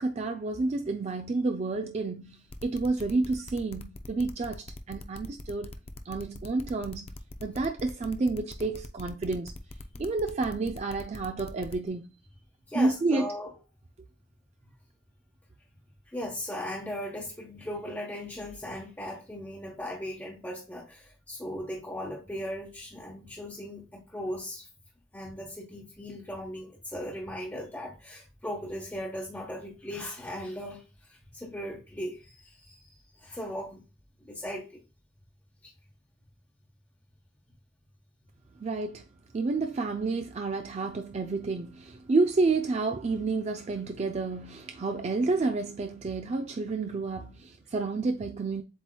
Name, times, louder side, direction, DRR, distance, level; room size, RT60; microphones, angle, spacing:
voice 1, 0.0-5.7 6.1-7.1 7.4-9.5 10.0-12.1 12.7-13.3 38.6-39.0 39.3-48.6, right 3 dB, 40° right, 0.4 m, -30 dB
sound 1, 2.5-11.9, left 2 dB, 35° left, 0.5 m, -43 dB
voice 2, 12.7-13.5 16.1-24.7 25.1-32.9 33.1-33.8 34.2-34.8 35.6-35.7, equal, 10° left, 1.1 m, -38 dB
7.6 x 2.9 x 2.3 m
head